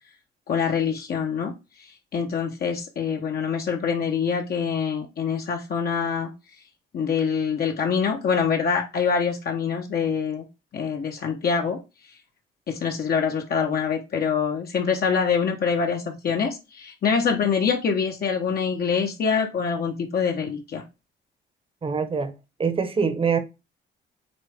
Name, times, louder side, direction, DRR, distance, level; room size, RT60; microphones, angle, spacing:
voice 1, 0.5-1.5 2.1-6.3 6.9-10.4 10.7-11.8 12.7-20.8, left 6 dB, 50° left, 1.3 m, -25 dB
voice 2, 21.8-22.3 22.6-23.4, right 5 dB, 30° right, 1.1 m, -24 dB
8.5 x 3.3 x 3.6 m
cardioid pair, 130°, 19 cm